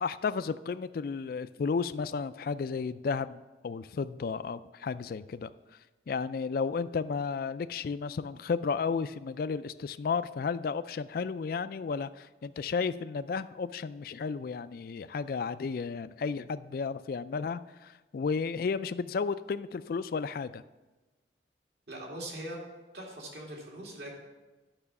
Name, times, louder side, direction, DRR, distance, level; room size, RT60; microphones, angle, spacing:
voice 1, 0.0-5.5 6.1-20.6, left 5 dB, 50° left, 14 dB, 0.3 m, -33 dB
voice 2, 21.9-22.6 22.9-24.1, right 1 dB, 60° right, -2 dB, 2.5 m, -41 dB
11.0 x 5.6 x 6.9 m, 1.2 s
head